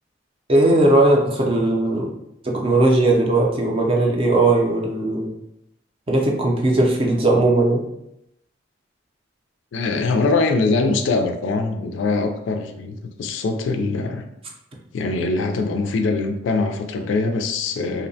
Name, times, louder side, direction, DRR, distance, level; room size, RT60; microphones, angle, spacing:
voice 1, 0.5-2.1 2.4-5.3 6.1-7.8, right 2 dB, 30° right, -1 dB, 0.4 m, -18 dB
voice 2, 9.7-14.3 14.9-18.1, left 3 dB, 70° left, 5 dB, 0.3 m, -22 dB
2.7 x 2.1 x 2.6 m, 0.81 s
head